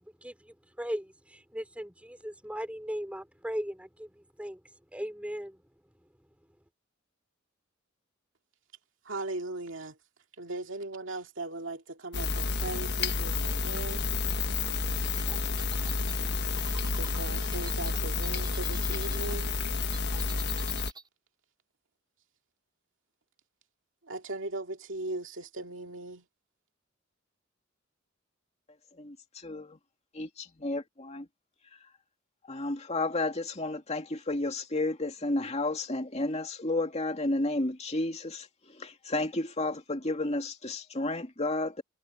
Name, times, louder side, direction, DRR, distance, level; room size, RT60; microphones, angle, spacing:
voice 1, 0.0-5.6, equal, 5° right, 4.6 m, -38 dB
voice 2, 9.0-10.0 10.4-14.0 17.0-19.5 24.0-26.3, right 2 dB, 70° right, 2.4 m, -38 dB
sound 1, 12.1-20.9, left 4 dB, 55° left, 1.4 m, -30 dB
sound 2, 15.1-19.3 19.6-21.1, right 4 dB, 20° right, 3.4 m, -47 dB
voice 3, 29.0-29.8 30.1-31.3 32.5-38.5 38.8-41.8, left 2 dB, 35° left, 2.5 m, -32 dB
head